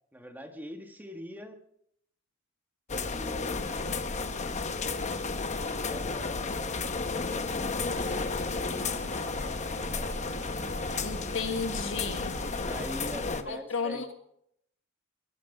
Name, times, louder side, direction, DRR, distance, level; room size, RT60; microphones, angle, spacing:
voice 1, 0.1-1.6 3.1-3.9 5.5-7.8 9.8-10.1 12.5-14.1, equal, 10° right, 5 dB, 1.4 m, -44 dB
sound 1, 2.9-13.4, left 4 dB, 35° left, 0.9 m, -32 dB
sound 2, 7.9-13.0, right 5 dB, 55° right, 1.0 m, -48 dB
voice 2, 11.0-12.4 13.5-14.1, left 5 dB, 70° left, 7 dB, 1.6 m, -33 dB
22.5 x 9.4 x 5.3 m, 0.73 s
head